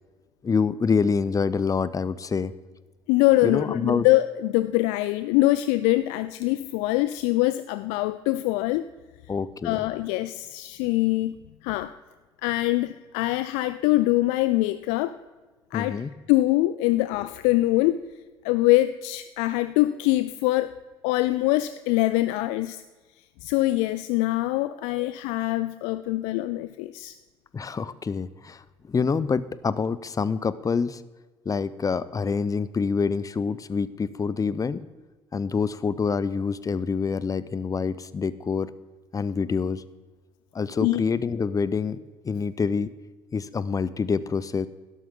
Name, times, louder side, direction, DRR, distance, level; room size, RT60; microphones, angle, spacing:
voice 1, 0.4-2.5 3.4-4.1 9.3-9.8 15.7-16.1 24.9-25.1 27.5-31.0 31.5-34.8 35.3-38.7 39.1-39.8 40.5-42.0 42.2-42.9 43.3-44.7, left 5 dB, 30° left, 17 dB, 0.7 m, -26 dB
voice 2, 3.1-8.8 9.6-11.3 11.6-11.9 12.4-15.2 15.7-16.0 16.3-18.0 18.4-20.7 21.0-22.8 23.4-27.2 40.8-41.0, left 17 dB, 70° left, 13 dB, 0.4 m, -23 dB
12.5 x 12.0 x 3.7 m, 1.3 s
hypercardioid pair, 50°, 12 cm